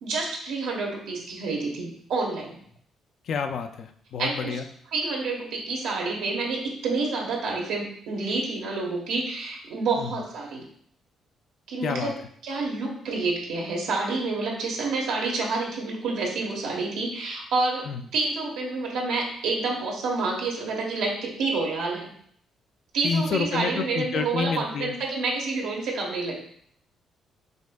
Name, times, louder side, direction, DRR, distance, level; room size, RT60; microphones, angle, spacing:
voice 1, 0.0-2.6 4.2-4.6 4.9-10.6 11.7-12.1 12.4-17.9 18.1-22.1 22.9-26.4, right 3 dB, 85° right, -1 dB, 1.1 m, -28 dB
voice 2, 3.3-4.6 10.0-10.1 11.8-12.1 17.9-18.0 23.0-24.9, left 5 dB, 65° left, 7 dB, 0.4 m, -29 dB
5.2 x 3.4 x 2.2 m, 0.64 s
cardioid pair, 90°, 0 cm